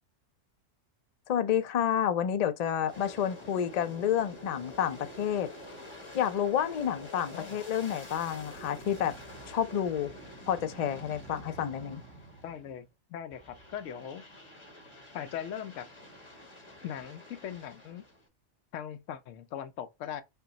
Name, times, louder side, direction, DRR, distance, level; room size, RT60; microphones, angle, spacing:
voice 1, 1.3-5.5 6.1-9.1 9.5-10.1 10.5-12.0, left 9 dB, 60° left, 0.4 m, -29 dB
Aircraft, 2.8-12.8 13.3-18.3, left 1 dB, 25° left, 0.8 m, -48 dB
voice 2, 12.4-14.2 15.1-15.9 16.8-18.0 18.7-20.2, left 9 dB, 80° left, 0.9 m, -40 dB
5.7 x 2.2 x 3.8 m
omnidirectional pair, 1.3 m